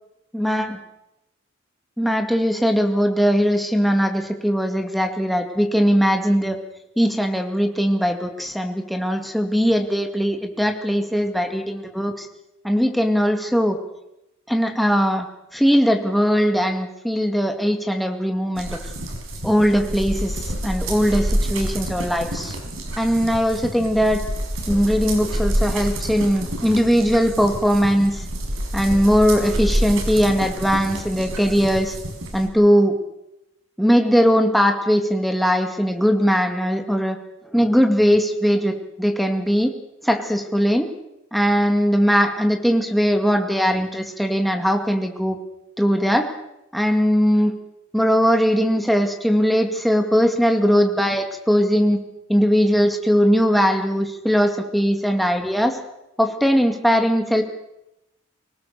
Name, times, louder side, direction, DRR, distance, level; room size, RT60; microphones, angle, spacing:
voice 1, 0.3-0.8 2.0-6.6 7.0-12.3 12.6-13.8 14.5-15.3 15.5-18.8 19.4-22.6 23.0-24.2 24.7-28.2 28.7-32.0 32.3-33.0 33.8-37.2 37.5-39.7 40.0-40.9 41.3-45.4 45.8-46.3 46.7-47.5 47.9-52.0 52.3-55.8 56.2-57.4, equal, ahead, 4 dB, 2.1 m, -20 dB
sound 1, 18.6-32.5, right 1 dB, 80° right, 5.2 m, -27 dB
25.0 x 18.5 x 6.8 m, 0.89 s
head